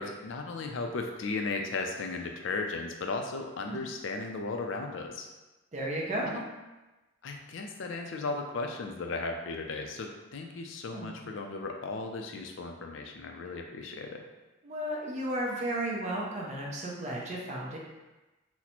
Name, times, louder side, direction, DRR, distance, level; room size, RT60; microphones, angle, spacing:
voice 1, 0.0-5.3 6.2-6.5 7.2-14.2, left 3 dB, 70° left, 3 dB, 0.4 m, -36 dB
voice 2, 5.7-6.3 10.9-11.3 14.6-17.8, right 1 dB, 35° right, -3 dB, 0.6 m, -34 dB
4.0 x 2.1 x 2.9 m, 1.1 s
head